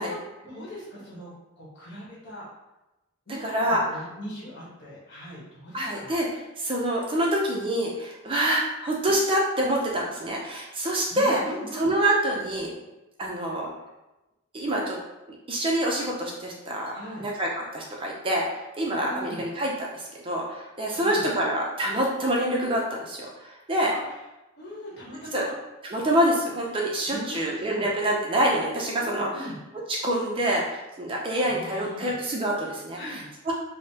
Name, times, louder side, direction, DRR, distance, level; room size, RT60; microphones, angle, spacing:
voice 1, 0.0-2.5 3.3-6.2 11.1-11.9 16.9-17.2 19.0-19.4 20.9-21.3 23.9-24.1 24.6-25.5 27.1-27.9 29.0-29.6 31.4-32.1 32.9-33.4, equal, 50° left, -6 dB, 1.2 m, -40 dB
voice 2, 3.4-3.8 5.7-11.4 11.7-12.7 13.2-13.7 14.5-15.0 15.5-16.9 17.2-18.5 18.8-23.9 25.3-25.4 25.9-29.3 30.0-33.0 33.5-33.6, right 1 dB, 25° right, -2 dB, 0.4 m, -26 dB
5.2 x 2.1 x 2.7 m, 1.0 s
head